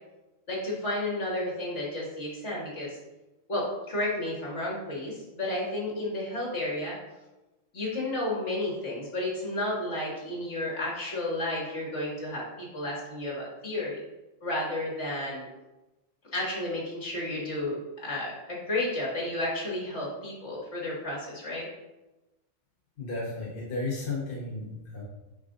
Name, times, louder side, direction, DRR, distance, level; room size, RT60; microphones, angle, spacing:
voice 1, 0.5-3.0 3.5-7.0 7.7-14.0 14.4-15.4 16.3-17.8 18.0-21.7, left 1 dB, 60° left, -4 dB, 2.3 m, -32 dB
voice 2, 23.0-25.0, left 3 dB, 45° left, -6 dB, 1.4 m, -33 dB
8.9 x 5.1 x 2.6 m, 1.0 s
omnidirectional pair, 1.3 m